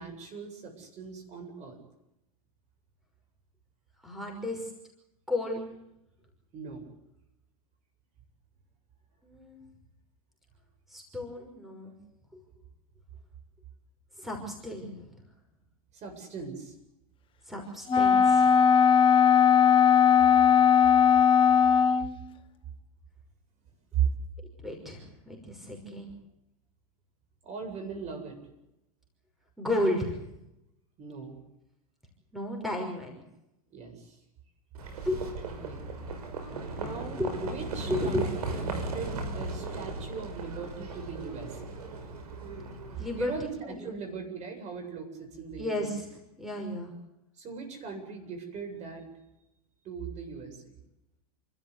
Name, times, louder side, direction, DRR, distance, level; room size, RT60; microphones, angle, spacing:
voice 1, 0.0-1.8 6.5-6.8 15.9-16.7 23.9-24.1 27.4-28.4 31.0-31.4 33.7-34.2 35.4-35.8 36.7-38.2 38.7-41.7 43.1-45.8 47.4-49.1 49.8-50.7, right 7 dB, 35° right, 4 dB, 7.9 m, -38 dB
voice 2, 4.0-4.7 5.3-5.7 9.2-9.6 10.9-11.9 12.3-12.4 14.2-15.2 17.5-18.6 24.6-26.1 29.6-30.2 32.3-33.2 35.1-35.2 36.5-37.6 37.9-38.3 43.0-43.3 43.6-43.9 45.6-46.1 46.4-46.9, left 1 dB, ahead, 2 dB, 5.8 m, -33 dB
Wind instrument woodwind instrument, 17.9-22.2, left 7 dB, 25° left, 1.4 m, -19 dB
Livestock farm animals working animals, 34.7-43.4, right 3 dB, 85° right, 5.8 m, -37 dB
29.5 x 14.0 x 8.3 m, 0.87 s
hypercardioid pair, 115°, 19 cm